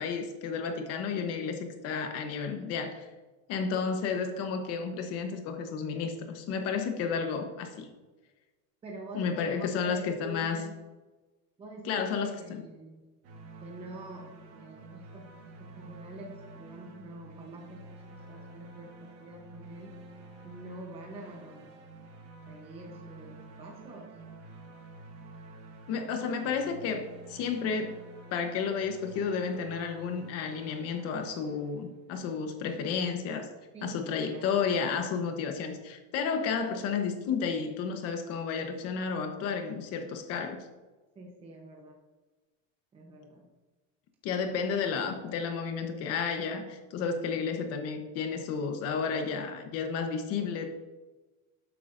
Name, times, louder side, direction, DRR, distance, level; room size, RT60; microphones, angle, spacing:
voice 1, 0.0-3.1 3.5-7.9 9.1-10.7 11.8-12.6 25.9-28.0 28.3-33.5 33.8-40.7 44.2-50.7, left 6 dB, 40° left, 6 dB, 1.0 m, -32 dB
voice 2, 8.8-10.8 11.6-13.0 13.6-15.3 15.6-18.9 19.2-19.9 20.4-21.8 22.5-24.1 33.7-34.5 41.2-42.0 42.9-43.5, right 1 dB, 15° right, -1 dB, 0.9 m, -46 dB
sound 1, 13.2-32.1, right 2 dB, 40° right, 1.2 m, -49 dB
11.5 x 8.0 x 2.6 m, 1.2 s
cardioid pair, 175°, 37 cm